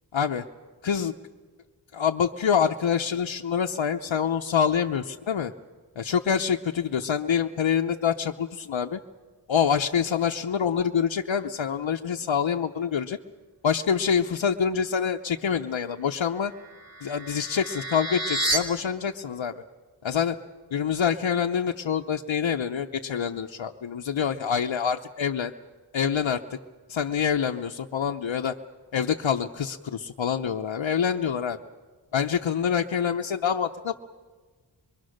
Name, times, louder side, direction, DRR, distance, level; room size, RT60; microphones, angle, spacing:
voice 1, 0.1-0.4 0.8-1.1 1.9-5.5 6.0-9.0 9.5-13.2 13.6-16.5 17.0-19.6 20.0-20.4 20.7-25.5 25.9-26.6 26.9-28.5 28.9-31.6 32.1-33.9, left 7 dB, 85° left, 4 dB, 0.8 m, -26 dB
sound 1, 16.3-18.6, right 2 dB, 50° right, 3.2 m, -30 dB
25.0 x 22.5 x 6.4 m, 1.4 s
wide cardioid pair, 40°, 46 cm